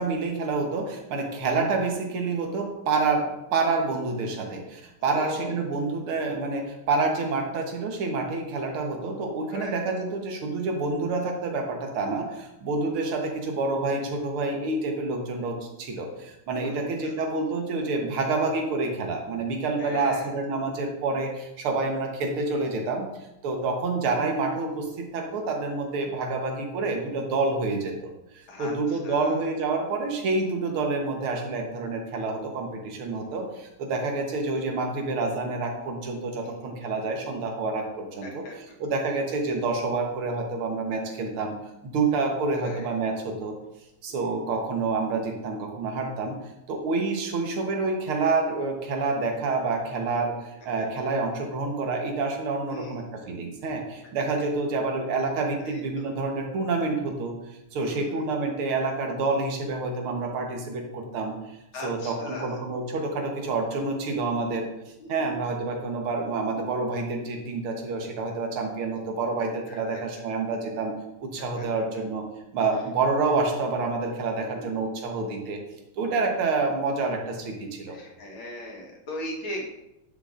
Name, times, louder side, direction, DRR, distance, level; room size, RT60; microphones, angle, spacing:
voice 1, 0.0-23.1 23.4-38.4 38.8-41.6 41.8-43.5 44.0-46.4 46.7-57.4 57.7-61.3 61.8-64.7 65.1-70.9 71.2-72.2 72.5-75.6 76.0-78.0, right 3 dB, 80° right, 2 dB, 2.0 m, -28 dB
voice 2, 5.0-5.6 9.5-10.0 12.9-13.2 16.6-17.1 19.8-20.3 24.1-24.2 28.5-29.5 36.4-36.7 38.2-38.5 42.6-42.9 44.1-44.5 52.7-53.0 55.6-56.1 57.8-58.3 61.7-62.6 65.0-65.3 69.7-70.3 71.4-71.7 74.4-74.7 77.9-79.7, left 1 dB, 70° left, -1 dB, 2.2 m, -39 dB
9.7 x 6.8 x 2.5 m, 0.91 s
omnidirectional pair, 2.3 m